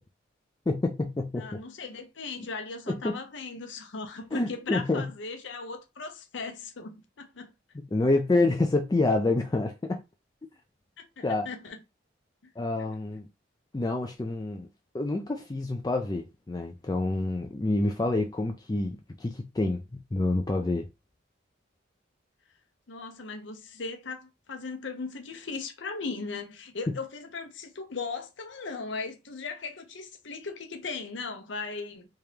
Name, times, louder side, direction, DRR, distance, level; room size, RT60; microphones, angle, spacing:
voice 1, 0.7-1.6 2.9-3.2 4.3-5.1 7.7-10.0 11.2-11.5 12.6-13.3 13.7-14.7 14.9-20.9, left 2 dB, 20° left, 0.3 m, -28 dB
voice 2, 1.4-7.5 11.0-11.8 22.9-32.1, left 4 dB, 75° left, 0.8 m, -38 dB
3.5 x 2.9 x 3.2 m
head